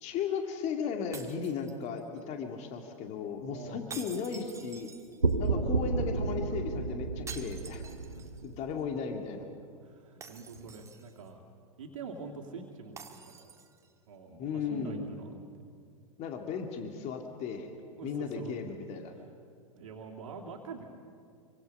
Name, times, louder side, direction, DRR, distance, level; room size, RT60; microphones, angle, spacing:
voice 1, 0.0-4.9 5.4-7.9 8.4-9.5 14.4-15.0 16.2-17.7 18.0-19.1, left 6 dB, 40° left, 4 dB, 2.2 m, -36 dB
sound 1, 1.1-2.2 3.9-5.5 7.3-8.5 8.8-8.9 10.2-11.3 13.0-13.9, right 5 dB, 15° right, 1.7 m, -48 dB
voice 2, 3.5-3.9 8.0-8.3 9.8-11.4 11.8-13.5 14.1-15.4 18.0-18.5 19.1-19.3 19.7-20.8, right 4 dB, 65° right, 0 dB, 2.7 m, -45 dB
sound 2, 5.2-8.9, right 4 dB, 85° right, 1.2 m, -31 dB
26.0 x 24.0 x 5.5 m, 2.3 s
figure-of-eight pair, 90°, 18 cm